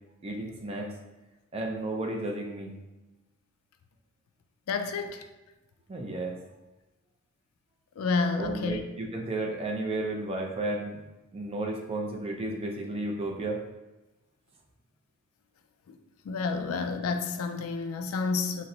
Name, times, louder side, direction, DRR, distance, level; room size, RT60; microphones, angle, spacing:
voice 1, 0.2-0.9 1.5-2.7 5.9-6.4 8.4-11.0 11.3-13.6 16.6-16.7, right 2 dB, 30° right, 0 dB, 0.4 m, -33 dB
voice 2, 4.7-5.2 8.0-8.8 16.3-18.7, left 4 dB, 80° left, 7 dB, 0.3 m, -29 dB
3.9 x 2.0 x 2.7 m, 1.0 s
head